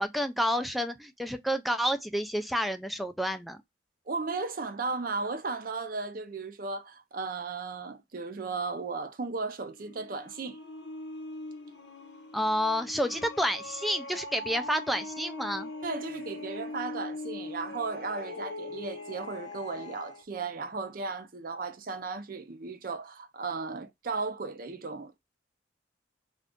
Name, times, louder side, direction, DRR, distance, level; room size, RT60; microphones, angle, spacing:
voice 1, 0.0-3.6 12.3-15.7, equal, ahead, 0.3 m, -29 dB
voice 2, 4.1-10.6 15.8-25.2, right 4 dB, 50° right, 0.5 m, -35 dB
sound 1, 9.7-20.2, left 2 dB, 65° left, 0.6 m, -41 dB
2.5 x 2.4 x 3.5 m
head